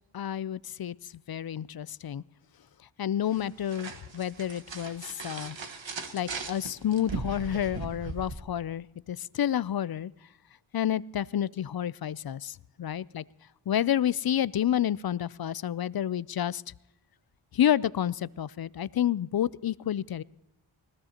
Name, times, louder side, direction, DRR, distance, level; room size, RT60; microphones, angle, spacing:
voice 1, 0.1-1.0 1.3-2.2 3.0-5.6 6.1-10.1 10.7-13.2 13.7-16.6 17.5-20.2, left 10 dB, 50° left, 20 dB, 0.4 m, -29 dB
sound 1, 3.3-8.3, right 4 dB, 65° right, 1.5 m, -38 dB
20.0 x 20.0 x 2.9 m, 0.91 s
wide cardioid pair, 65°, 48 cm